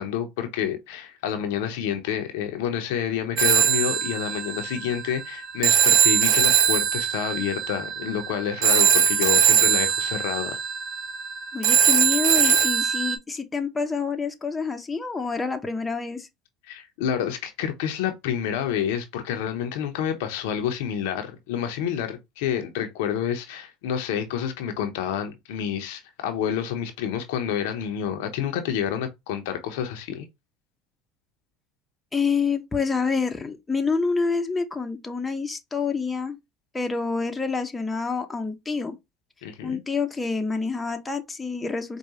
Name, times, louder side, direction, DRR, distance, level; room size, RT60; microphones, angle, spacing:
voice 1, 0.0-10.6 16.7-30.3 39.4-39.8, left 9 dB, 70° left, 0.7 m, -29 dB
Telephone, 3.4-13.2, right 8 dB, 55° right, 1.0 m, -21 dB
voice 2, 11.5-16.3 32.1-36.4 36.7-38.9 39.6-42.0, left 4 dB, 15° left, 0.8 m, -27 dB
4.6 x 2.3 x 2.9 m
hypercardioid pair, 75°, 0 cm